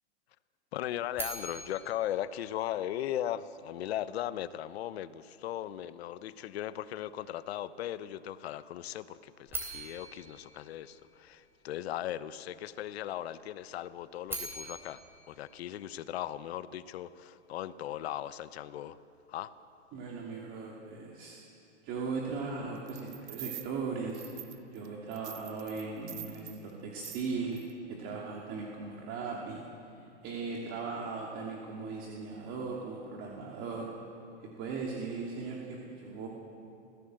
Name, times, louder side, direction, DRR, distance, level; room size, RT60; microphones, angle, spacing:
voice 1, 0.7-15.0 15.3-19.0 19.3-19.5, left 12 dB, 60° left, 15 dB, 1.0 m, -38 dB
sound 1, 1.2-3.3 9.5-11.6 14.0-16.4, right 3 dB, 5° right, 3.8 m, -43 dB
voice 2, 19.9-21.4 21.8-24.2 24.7-27.6 27.9-29.6 30.0-33.9 34.6-36.3, right 4 dB, 35° right, -2 dB, 2.8 m, -38 dB
sound 2, 22.9-23.7 24.1-24.9 25.1-26.6 27.0-27.3 27.6-27.7, right 12 dB, 70° right, 1.6 m, -45 dB
27.5 x 16.0 x 7.8 m, 2.8 s
hypercardioid pair, 145°, 35 cm